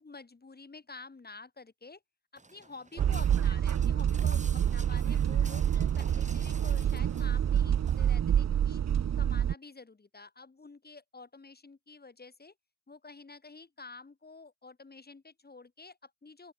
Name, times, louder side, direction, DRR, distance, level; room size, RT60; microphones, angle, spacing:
voice 1, 0.0-2.0 2.3-8.8 9.2-12.5 12.9-16.5, left 3 dB, 30° left, 3.0 m, -49 dB
Walk footsteps, 2.4-8.2, right 3 dB, 20° right, 3.6 m, -50 dB
sound 1, 3.0-9.5, right 9 dB, 50° right, 0.9 m, -27 dB
open air
cardioid pair, 65°, 34 cm